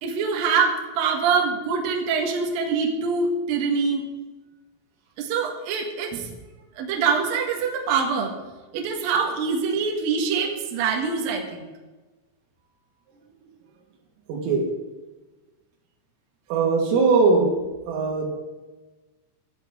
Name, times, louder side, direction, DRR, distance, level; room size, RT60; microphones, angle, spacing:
voice 1, 0.0-4.0 5.2-6.3 6.8-8.4 8.7-11.7, right 5 dB, 60° right, 1 dB, 2.6 m, -24 dB
voice 2, 14.3-14.7 16.5-17.6 17.9-18.3, right 4 dB, 80° right, 1 dB, 4.5 m, -20 dB
16.5 x 11.5 x 3.7 m, 1.2 s
omnidirectional pair, 6.0 m